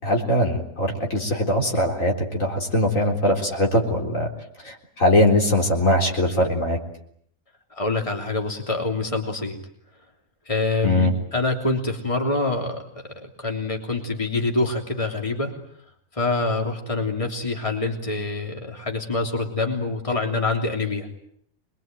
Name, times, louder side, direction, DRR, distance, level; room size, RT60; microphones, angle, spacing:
voice 1, 0.0-4.3 4.6-6.8 10.8-11.1, left 1 dB, 60° left, 1 dB, 4.3 m, -21 dB
voice 2, 7.7-9.6 10.4-15.5 16.1-21.1, left 3 dB, 20° left, 2 dB, 3.3 m, -26 dB
26.5 x 22.0 x 9.2 m, 0.68 s
omnidirectional pair, 1.6 m